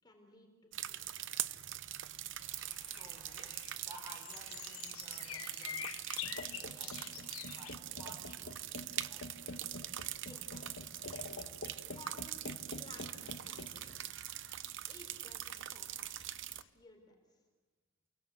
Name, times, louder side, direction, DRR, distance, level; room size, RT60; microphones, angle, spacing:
voice 1, 0.0-1.3 10.3-10.9 11.9-12.4 12.8-14.2 14.9-16.1 16.7-17.4, left 1 dB, 20° left, 2 dB, 3.9 m, -58 dB
sound 1, 0.7-16.6, right 12 dB, 60° right, 0.8 m, -43 dB
sound 2, 2.4-7.7, left 11 dB, 85° left, 0.9 m, -47 dB
voice 2, 2.8-6.1 6.4-9.3, equal, 10° right, 2 dB, 4.8 m, -56 dB
sound 3, 6.2-16.7, left 2 dB, 60° left, 2.1 m, -49 dB
29.0 x 23.5 x 7.9 m, 1.3 s
head